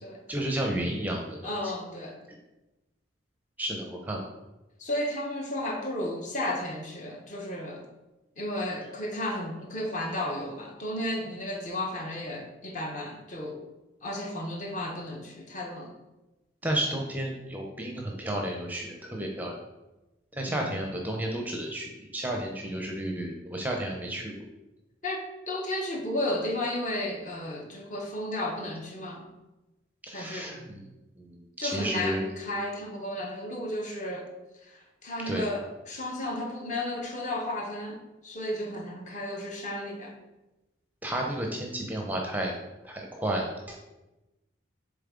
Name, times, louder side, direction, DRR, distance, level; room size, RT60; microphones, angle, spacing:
voice 1, 0.3-1.7 3.6-4.2 16.6-19.6 20.3-24.4 30.0-30.8 31.2-32.2 35.3-35.5 41.0-42.6 42.8-43.8, right 1 dB, 10° right, 1 dB, 0.6 m, -32 dB
voice 2, 1.4-2.2 4.8-7.9 8.4-13.6 14.0-15.9 20.4-20.7 25.0-29.3 30.1-30.7 31.6-34.3 34.6-40.1, left 1 dB, 40° left, 1 dB, 0.9 m, -33 dB
7.2 x 3.6 x 3.7 m, 1.0 s
head